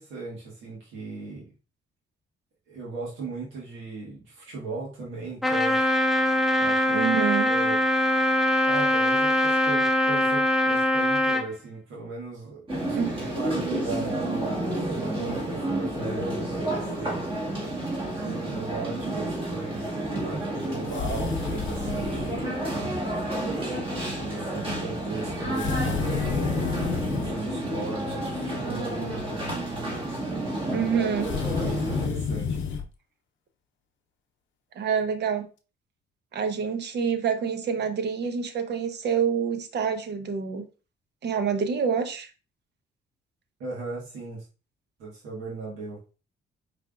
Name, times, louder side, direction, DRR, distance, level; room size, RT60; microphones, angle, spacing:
voice 1, 0.0-1.5 2.7-5.8 6.1-6.3 6.6-7.1 7.5-7.8 8.6-17.3 18.2-22.6 23.5-23.8 24.1-26.0 26.9-29.5 31.5-32.6 43.6-44.4 45.0-46.0, right 3 dB, 90° right, -4 dB, 1.5 m, -37 dB
Trumpet, 5.4-11.5, left 1 dB, ahead, 0.7 m, -22 dB
voice 2, 6.9-7.5 12.9-13.3 30.7-31.3 34.8-35.4 36.3-40.6 41.2-42.3, right 7 dB, 60° right, 7 dB, 0.8 m, -27 dB
sound 1, 12.7-32.1, right 1 dB, 25° right, 1.8 m, -30 dB
sound 2, 20.9-22.4 25.6-27.4 31.2-32.8, left 6 dB, 70° left, 0.6 m, -30 dB
4.8 x 3.4 x 2.4 m, 0.32 s
cardioid pair, 90°, 20 cm